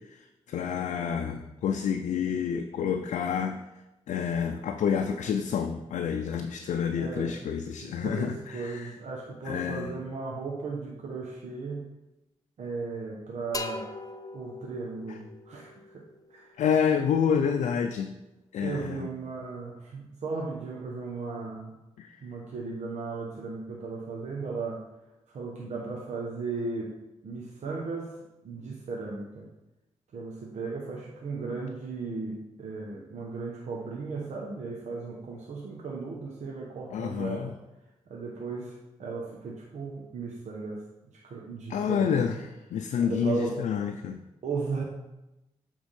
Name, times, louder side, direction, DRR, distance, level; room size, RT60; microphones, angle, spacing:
voice 1, 0.1-3.6 4.1-9.0 9.4-9.9 16.6-18.1 18.5-19.1 22.0-22.2 36.9-37.5 41.7-42.4 42.7-44.2, left 7 dB, 85° left, 5 dB, 0.5 m, -28 dB
voice 2, 7.0-7.4 8.0-11.8 12.6-13.9 14.3-16.6 18.6-21.8 22.2-24.8 25.3-27.0 27.2-28.1 28.4-29.5 30.1-37.5 38.1-40.8 41.1-42.2 43.0-43.6 44.4-44.8, right 4 dB, 75° right, -2 dB, 1.0 m, -36 dB
sound 1, 13.5-17.2, left 3 dB, 30° left, 0.6 m, -42 dB
8.1 x 3.6 x 5.2 m, 0.98 s
cardioid pair, 65°, 12 cm